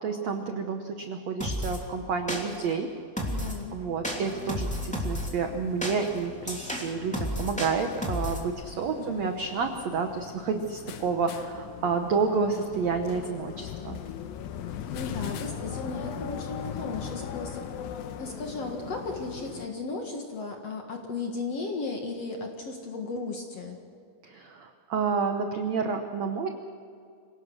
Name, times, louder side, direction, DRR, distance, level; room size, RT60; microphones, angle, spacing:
voice 1, 0.0-2.9 3.7-14.0 24.2-26.5, right 5 dB, 80° right, 5 dB, 1.5 m, -30 dB
sound 1, 1.4-1.8 2.3-2.7 3.2-3.6 4.0-5.3 5.8-8.4, equal, ahead, 2.0 m, -32 dB
voice 2, 3.3-3.8 9.0-9.3 14.9-17.6 18.2-23.8, left 3 dB, 50° left, 2 dB, 2.1 m, -35 dB
sound 2, 4.1-19.7, left 8 dB, 70° left, 2.6 m, -40 dB
26.5 x 18.0 x 6.5 m, 2.3 s
omnidirectional pair, 4.8 m